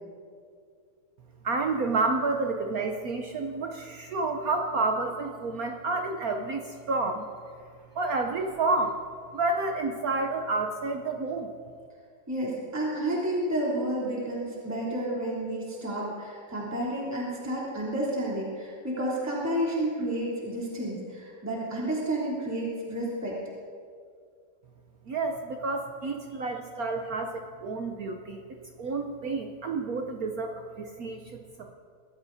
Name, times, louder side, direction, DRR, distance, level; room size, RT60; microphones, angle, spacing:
voice 1, 1.4-7.3 7.9-9.0 9.3-11.6 25.1-28.4 28.8-31.7, right 3 dB, 65° right, 4 dB, 0.9 m, -30 dB
voice 2, 12.3-23.4, right 1 dB, 5° right, -6 dB, 2.9 m, -31 dB
24.0 x 14.0 x 2.7 m, 2.1 s
omnidirectional pair, 2.4 m